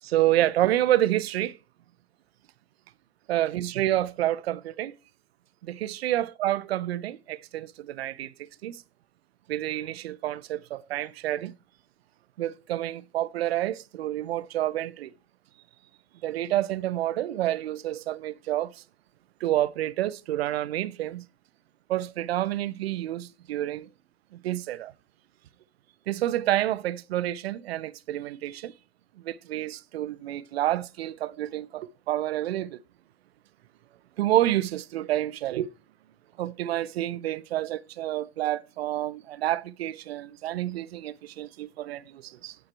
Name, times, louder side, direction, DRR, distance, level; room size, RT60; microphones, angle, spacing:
voice 1, 0.0-1.6 3.3-4.9 5.6-8.8 9.5-11.5 12.4-15.1 16.2-18.8 19.4-21.2 21.9-23.9 24.4-24.9 26.1-28.7 29.2-32.8 34.2-35.7 36.4-42.6, right 13 dB, 70° right, 0.9 m, -28 dB
10.5 x 8.7 x 4.5 m
hypercardioid pair, 100°, 32 cm